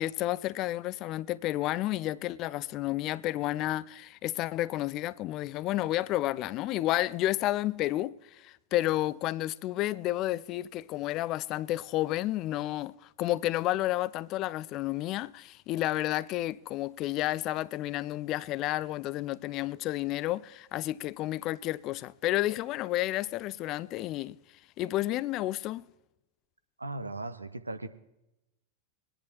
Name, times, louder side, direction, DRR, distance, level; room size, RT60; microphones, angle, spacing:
voice 1, 0.0-24.4 24.8-25.8, left 15 dB, 40° left, 0.3 m, -31 dB
voice 2, 26.8-27.9, right 2 dB, 80° right, 0.8 m, -37 dB
22.0 x 10.5 x 3.0 m
figure-of-eight pair, 90°, 0 cm